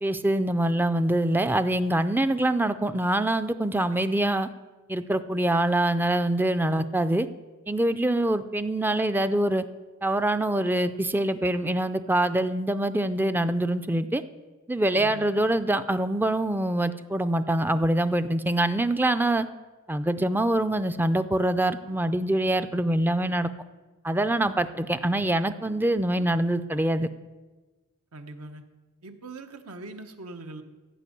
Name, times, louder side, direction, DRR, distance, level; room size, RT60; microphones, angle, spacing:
voice 1, 0.0-4.5 4.9-7.3 7.7-9.6 10.0-14.2 14.7-19.5 19.9-23.5 24.0-27.1, right 1 dB, 10° right, 10 dB, 0.4 m, -24 dB
voice 2, 14.9-15.3 28.1-28.7 29.0-30.6, right 2 dB, 75° right, 5 dB, 1.2 m, -42 dB
15.0 x 5.4 x 8.4 m, 1.2 s
head